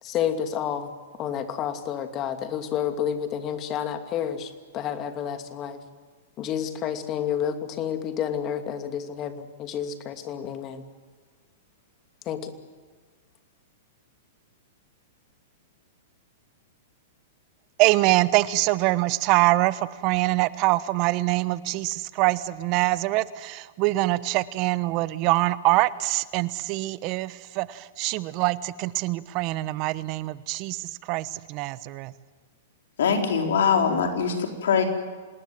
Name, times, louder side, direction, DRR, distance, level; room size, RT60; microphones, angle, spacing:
voice 1, 0.0-0.9 1.2-5.8 6.4-10.8 12.3-12.5, left 9 dB, 35° left, 7 dB, 2.6 m, -30 dB
voice 2, 17.8-32.1, right 19 dB, 45° right, 17 dB, 1.1 m, -24 dB
voice 3, 33.0-34.8, left 6 dB, 75° left, 4 dB, 4.6 m, -22 dB
26.5 x 19.5 x 7.7 m, 1.5 s
hypercardioid pair, 120°, 0 cm